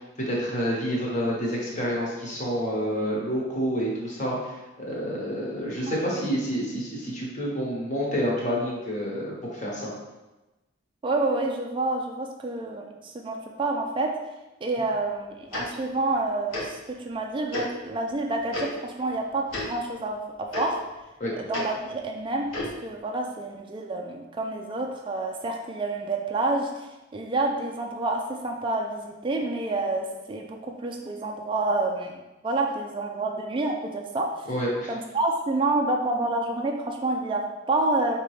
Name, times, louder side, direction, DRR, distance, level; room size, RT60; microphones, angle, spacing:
voice 1, 0.3-4.4 4.8-9.9 21.2-21.3 34.5-34.9, equal, 40° left, -4 dB, 1.1 m, -28 dB
voice 2, 5.9-6.2 11.0-14.2 14.6-20.8 21.3-22.5 22.8-34.5 34.9-38.2, right 2 dB, 25° right, 1 dB, 0.3 m, -28 dB
Tick-tock, 15.5-15.6 16.5-16.6 17.5-17.6 18.5-18.6 19.5-19.6 20.5-20.6 21.5-21.6 22.5-22.7, left 2 dB, 80° left, 1.1 m, -31 dB
4.8 x 2.9 x 3.2 m, 1.1 s
head